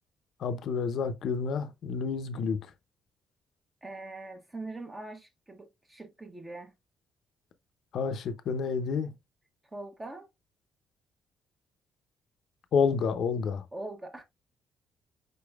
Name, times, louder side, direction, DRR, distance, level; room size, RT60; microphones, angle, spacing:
voice 1, 0.4-2.6 7.9-9.1 12.7-13.7, left 5 dB, 70° left, 0.6 m, -29 dB
voice 2, 3.8-6.7 9.7-10.3 13.7-14.2, right 2 dB, 20° right, 0.9 m, -42 dB
5.1 x 4.0 x 2.3 m
cardioid pair, 90°, 0 cm